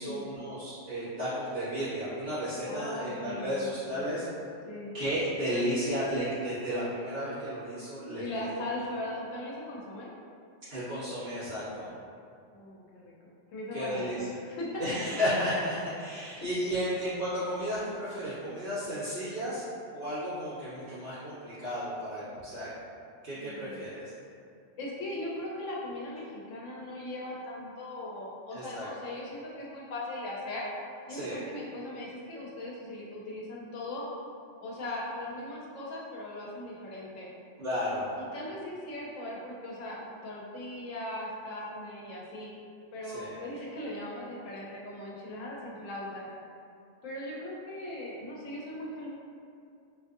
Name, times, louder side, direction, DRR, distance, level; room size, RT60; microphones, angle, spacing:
voice 1, 0.0-4.2 4.9-8.6 10.7-11.9 13.7-14.2 14.8-19.6 19.9-22.7 23.2-24.1 28.5-28.9 31.1-31.4 37.6-38.1 43.0-43.4, equal, 65° right, -15 dB, 1.9 m, -33 dB
voice 2, 2.7-4.2 4.7-4.9 8.2-10.1 12.5-13.1 13.5-14.7 16.8-17.0 18.4-18.6 23.3-23.9 24.8-30.7 31.1-34.1 34.6-37.3 38.2-42.5 42.9-46.3 47.0-49.1, left 1 dB, 90° left, -4 dB, 1.1 m, -39 dB
3.8 x 2.5 x 2.5 m, 2.4 s
omnidirectional pair, 1.3 m